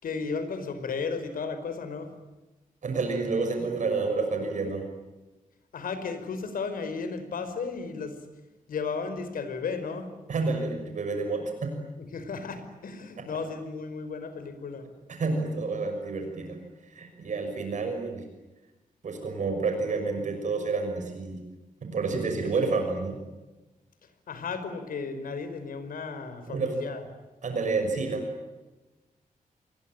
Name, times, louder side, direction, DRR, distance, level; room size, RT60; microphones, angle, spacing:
voice 1, 0.0-2.1 5.7-8.2 8.7-10.1 12.1-14.9 24.3-27.0, left 5 dB, 85° left, 9 dB, 5.2 m, -34 dB
voice 2, 2.8-4.9 10.3-11.8 15.1-16.6 16.8-18.2 19.0-21.4 21.8-23.2 26.5-26.7 27.4-28.3, right 3 dB, 60° right, 5 dB, 6.1 m, -29 dB
28.5 x 22.5 x 9.1 m, 1.1 s
wide cardioid pair, 150°, 14 cm